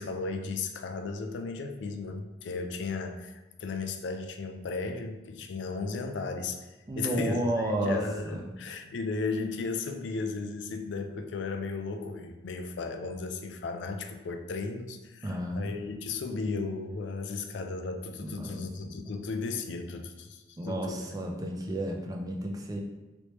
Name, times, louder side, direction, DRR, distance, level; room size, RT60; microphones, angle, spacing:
voice 1, 0.0-6.7 7.0-21.0, left 4 dB, 65° left, 6 dB, 0.4 m, -35 dB
voice 2, 6.9-8.5 15.2-15.8 18.2-19.1 20.6-22.8, right 1 dB, 20° right, 1 dB, 0.4 m, -32 dB
3.1 x 3.1 x 2.9 m, 1.1 s
head